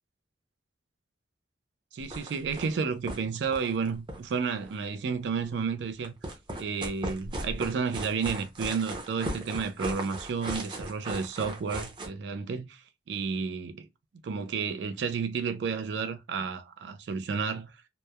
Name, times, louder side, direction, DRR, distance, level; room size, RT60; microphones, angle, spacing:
voice 1, 1.9-6.1 6.6-13.9 14.2-17.8, right 5 dB, 75° right, 0.3 m, -31 dB
sound 1, 2.0-2.8 3.1-3.2 3.4-4.8 6.0-12.1, right 1 dB, 30° right, 0.6 m, -37 dB
2.9 x 2.1 x 2.2 m
head